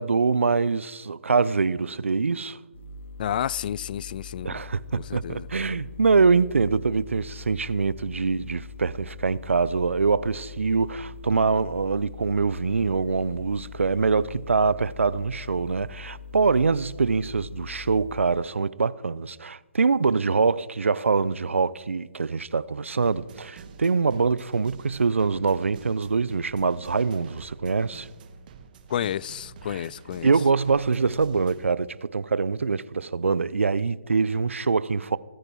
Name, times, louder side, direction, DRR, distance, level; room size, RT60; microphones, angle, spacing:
voice 1, 0.0-2.6 4.4-28.1 29.7-29.8 30.2-35.2, right 4 dB, 75° right, 0.6 m, -24 dB
sound 1, 2.7-18.2, left 6 dB, 65° left, 3.7 m, -42 dB
voice 2, 3.2-4.5 5.0-5.5 28.9-30.3, left 10 dB, 45° left, 0.4 m, -30 dB
sound 2, 23.0-31.7, right 5 dB, 40° right, 1.7 m, -47 dB
25.0 x 9.7 x 4.6 m
figure-of-eight pair, 140°, 7 cm